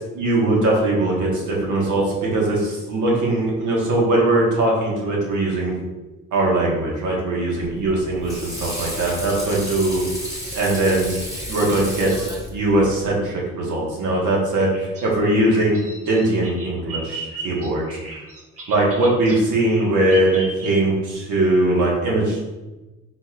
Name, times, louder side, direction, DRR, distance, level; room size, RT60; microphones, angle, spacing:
voice 1, 0.1-5.7 6.3-10.0 10.5-11.2 11.5-12.1 12.5-14.7 15.0-15.8 16.1-17.8 18.7-22.4, right 2 dB, 75° right, -3 dB, 1.4 m, -20 dB
Water / Sink (filling or washing), 7.6-13.1, equal, 10° right, 1.3 m, -32 dB
Bird vocalization bird call bird song, 14.6-21.1, right 2 dB, 50° right, 1.5 m, -36 dB
4.2 x 4.1 x 2.4 m, 1.1 s
cardioid pair, 90°, 30 cm